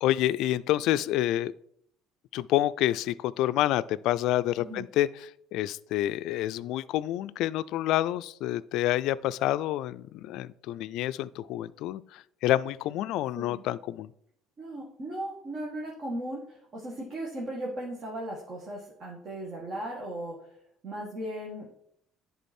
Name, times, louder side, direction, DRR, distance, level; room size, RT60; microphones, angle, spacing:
voice 1, 0.0-1.5 2.3-14.1, left 14 dB, 70° left, 16 dB, 0.3 m, -28 dB
voice 2, 14.6-20.4 20.8-21.7, right 1 dB, 40° right, -3 dB, 1.6 m, -37 dB
10.5 x 3.8 x 4.3 m, 0.69 s
cardioid pair, 125°, 0 cm